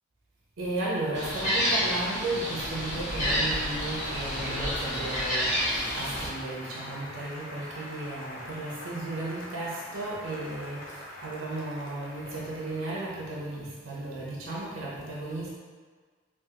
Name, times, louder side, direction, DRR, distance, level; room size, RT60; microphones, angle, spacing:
voice 1, 0.6-15.5, right 2 dB, 85° right, -5 dB, 0.8 m, -34 dB
Applause, 1.1-13.6, equal, 70° left, 0.6 m, -44 dB
Gull seagull, 1.1-6.3, equal, 30° left, 1.0 m, -29 dB
3.5 x 3.0 x 2.9 m, 1.5 s
head